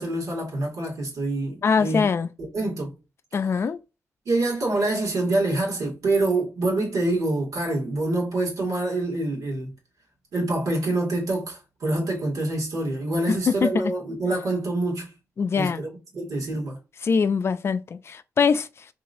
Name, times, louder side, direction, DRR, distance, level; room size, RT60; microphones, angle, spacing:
voice 1, 0.0-2.0 2.4-2.9 4.3-9.7 10.3-15.1 15.6-15.9 16.1-16.8, right 2 dB, 80° right, 2.2 m, -26 dB
voice 2, 1.6-2.3 3.3-3.8 13.3-13.9 15.4-15.8 17.0-18.9, left 5 dB, 50° left, 0.4 m, -23 dB
3.7 x 3.0 x 2.6 m
cardioid pair, 90°, 6 cm